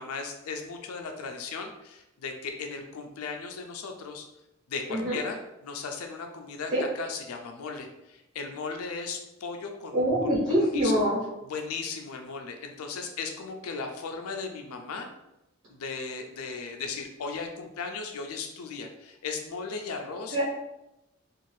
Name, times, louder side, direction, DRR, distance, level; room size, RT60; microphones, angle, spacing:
voice 1, 0.0-4.2 4.7-10.3 10.6-10.9 11.5-15.1 15.7-20.4, left 4 dB, 80° left, 4 dB, 0.4 m, -37 dB
voice 2, 4.9-5.2 6.7-6.8 9.9-11.2 20.3-20.4, equal, 45° right, -10 dB, 1.2 m, -24 dB
2.6 x 2.4 x 3.1 m, 0.90 s
head